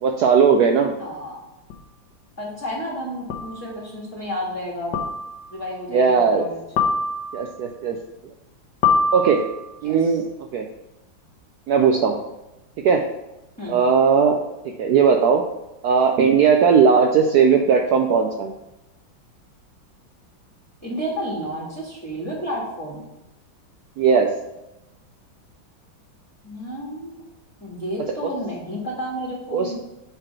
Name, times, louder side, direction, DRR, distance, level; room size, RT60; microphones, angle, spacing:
voice 1, 0.0-0.9 5.9-6.5 7.3-8.0 9.1-9.4 9.8-10.3 10.5-10.7 11.7-12.2 12.8-13.1 13.7-14.4 14.8-15.4 15.8-18.5 24.0-24.3 29.5-29.7, right 6 dB, 85° right, 3 dB, 0.8 m, -17 dB
voice 2, 1.0-1.4 2.4-5.0 5.5-6.6 9.8-10.1 13.6-13.8 20.8-23.0 26.4-27.2 27.6-29.7, equal, 10° left, -5 dB, 1.2 m, -31 dB
sound 1, 1.7-1.8 3.3-3.7 4.9-5.5 6.8-7.5 8.8-9.8, left 4 dB, 65° left, 1.3 m, -23 dB
5.0 x 4.6 x 5.9 m, 0.93 s
omnidirectional pair, 2.3 m